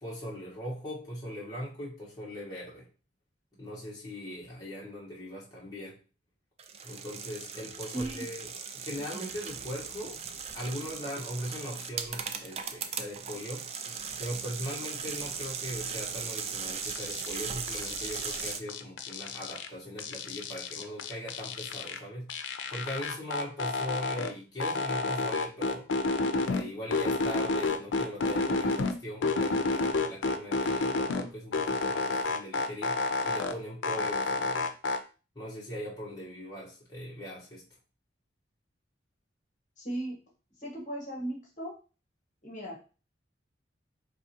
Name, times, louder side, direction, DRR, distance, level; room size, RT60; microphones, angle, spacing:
voice 1, 0.0-2.9 3.6-6.0 6.8-10.2 10.5-13.7 14.2-22.3 22.7-25.9 26.4-34.7 35.3-37.6, equal, 20° left, -7 dB, 1.3 m, -40 dB
sound 1, 6.6-18.6, right 6 dB, 35° right, 0.4 m, -38 dB
voice 2, 7.9-8.2 9.1-9.2 39.8-40.2 40.6-41.7 42.4-42.8, right 1 dB, 45° left, -2 dB, 1.3 m, -36 dB
sound 2, 16.8-17.4 17.7-19.7 20.0-22.0 22.3-24.3 24.6-26.6 26.9-28.9 29.2-31.2 31.5-33.5 33.8-35.0, left 3 dB, 85° left, 0.5 m, -30 dB
4.7 x 3.1 x 2.8 m, 0.35 s
head